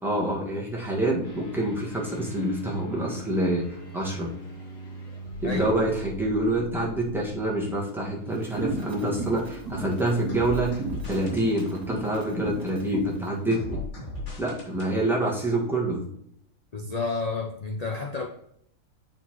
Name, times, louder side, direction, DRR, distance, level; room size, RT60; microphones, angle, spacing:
voice 1, 0.0-4.3 5.4-13.8 14.4-16.0, right 1 dB, ahead, -3 dB, 1.5 m, -27 dB
sound 1, 1.2-9.8 10.3-11.7 13.5-14.9, equal, 80° left, 3.0 m, -40 dB
sound 2, 8.4-13.2, right 3 dB, 70° right, 2.1 m, -35 dB
voice 2, 16.7-18.3, left 3 dB, 50° left, 0 dB, 0.4 m, -31 dB
8.8 x 4.4 x 3.0 m, 0.71 s
omnidirectional pair, 1.8 m